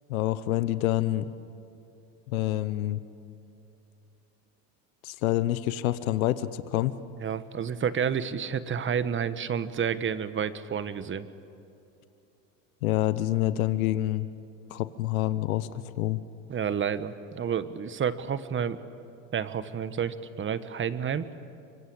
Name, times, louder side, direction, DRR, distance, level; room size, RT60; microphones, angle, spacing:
voice 1, 0.1-1.3 2.3-3.0 5.0-6.9 12.8-14.3 14.7-15.7 16.0-16.2, left 14 dB, 90° left, 14 dB, 1.0 m, -27 dB
voice 2, 7.2-11.3 16.5-18.8 19.3-21.3, right 7 dB, 30° right, 13 dB, 1.3 m, -30 dB
25.5 x 24.0 x 8.7 m, 2.7 s
supercardioid pair, 100°, 41 cm